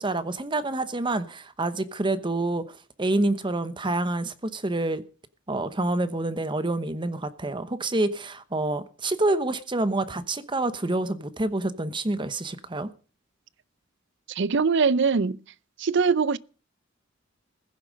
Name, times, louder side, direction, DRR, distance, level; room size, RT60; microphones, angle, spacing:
voice 1, 0.0-5.0 5.5-12.9, right 2 dB, 25° right, 1.0 m, -27 dB
voice 2, 14.4-15.4 15.8-16.4, right 5 dB, 60° right, 0.6 m, -22 dB
15.5 x 11.0 x 5.2 m
head